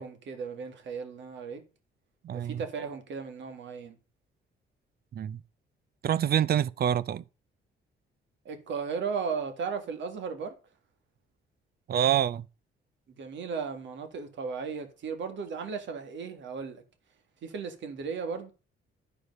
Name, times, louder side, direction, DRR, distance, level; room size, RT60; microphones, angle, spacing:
voice 1, 0.0-1.6 2.3-4.0 8.5-10.5 13.1-16.8 17.4-18.5, right 5 dB, 70° right, 1.8 m, -36 dB
voice 2, 2.2-2.6 5.1-5.4 6.0-7.2 11.9-12.5, right 10 dB, 50° right, 0.6 m, -26 dB
11.5 x 4.8 x 5.4 m
cardioid pair, 90°, 20 cm